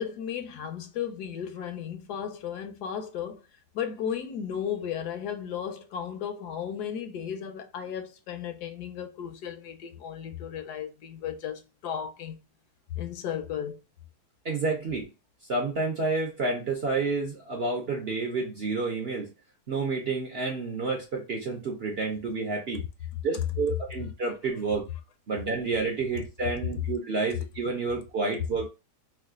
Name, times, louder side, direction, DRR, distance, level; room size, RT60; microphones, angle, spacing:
voice 1, 0.0-3.4 3.7-12.4 12.9-13.8, left 8 dB, 80° left, 1.2 m, -35 dB
voice 2, 14.4-15.1 15.5-19.3 19.7-22.8 23.2-24.8 25.3-28.7, right 3 dB, 55° right, 0.7 m, -29 dB
3.1 x 2.3 x 3.5 m
omnidirectional pair, 1.7 m